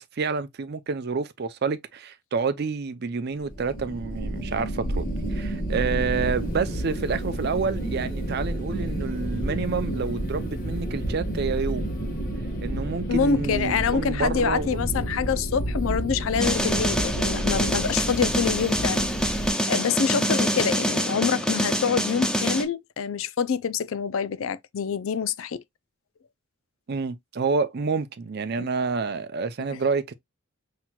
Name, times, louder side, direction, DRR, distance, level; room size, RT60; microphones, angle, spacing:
voice 1, 0.0-11.9 12.6-14.8 20.1-20.3 26.9-30.1, right 4 dB, 50° right, 0.5 m, -28 dB
sound 1, 3.4-19.5, right 1 dB, 40° left, 1.6 m, -30 dB
voice 2, 13.1-25.6 28.6-28.7 29.7-29.8, left 6 dB, 75° left, 0.4 m, -26 dB
sound 2, 16.4-22.6, equal, 5° left, 0.5 m, -25 dB
5.8 x 2.9 x 2.2 m
head